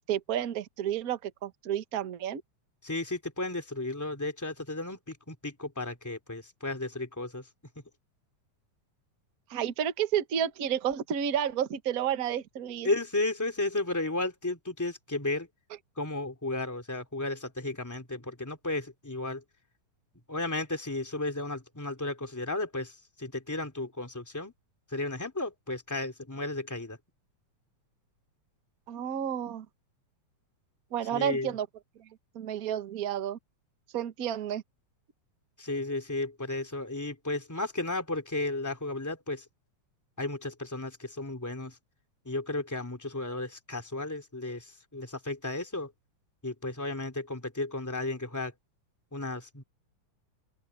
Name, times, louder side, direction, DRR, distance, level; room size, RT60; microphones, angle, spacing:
voice 1, 0.1-2.4 9.5-12.9 28.9-29.6 30.9-31.7 32.3-33.4 33.9-34.6, right 9 dB, 55° right, 1.0 m, -31 dB
voice 2, 2.8-7.5 12.8-15.5 16.0-19.4 20.3-24.5 24.9-27.0 31.1-31.6 35.6-39.5 40.2-41.8 42.2-45.9 46.4-48.5 49.1-49.6, left 2 dB, 5° left, 3.0 m, -34 dB
open air
omnidirectional pair, 3.4 m